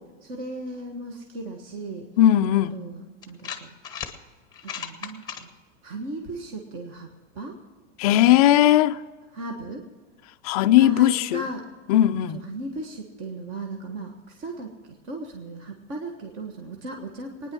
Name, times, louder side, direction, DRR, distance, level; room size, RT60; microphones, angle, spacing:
voice 1, 0.2-2.1 2.5-3.7 4.6-5.5 5.8-7.6 9.3-9.9 10.8-11.7 12.3-17.5, right 2 dB, 30° right, 1.5 m, -36 dB
voice 2, 2.2-2.8 8.0-9.0 10.4-11.4 11.9-12.4, left 13 dB, 30° left, 0.4 m, -18 dB
sound 1, 2.4-2.5 3.2-4.1 4.5-5.4, left 8 dB, 10° left, 1.0 m, -35 dB
21.5 x 9.9 x 6.1 m
supercardioid pair, 165°, 37 cm